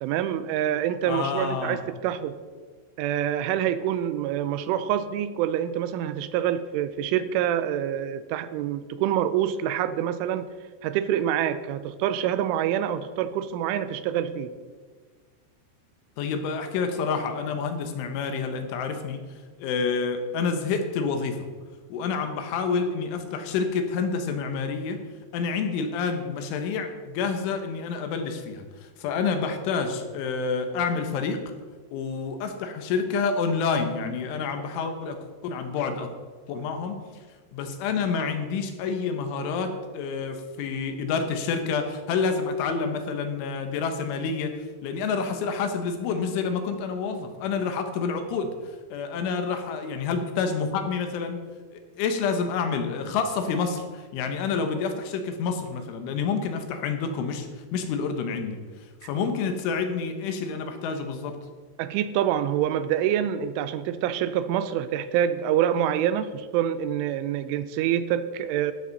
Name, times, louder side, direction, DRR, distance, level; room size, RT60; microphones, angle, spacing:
voice 1, 0.0-2.4 3.0-10.5 10.8-14.5 61.8-68.7, right 10 dB, 90° right, 13 dB, 3.2 m, -26 dB
voice 2, 1.1-1.8 16.2-19.2 19.6-21.5 21.9-25.0 25.3-28.7 29.0-31.4 31.9-35.2 35.4-36.1 36.5-37.0 37.5-44.5 44.8-48.5 48.9-51.4 52.0-58.6 59.0-61.4, left 5 dB, 80° left, 6 dB, 3.6 m, -28 dB
15.0 x 12.5 x 4.1 m, 1.5 s
omnidirectional pair, 5.6 m